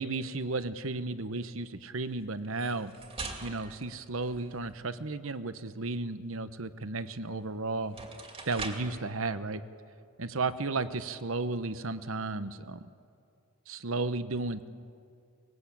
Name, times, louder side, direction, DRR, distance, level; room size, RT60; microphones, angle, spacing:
voice 1, 0.0-2.9 3.4-8.0 8.5-9.6 10.2-12.8 13.7-14.7, right 3 dB, 65° right, 12 dB, 1.1 m, -34 dB
sound 1, 2.4-4.8 7.3-7.4 7.8-9.0, right 3 dB, 25° right, 2.4 m, -42 dB
24.0 x 21.0 x 8.6 m, 2.3 s
head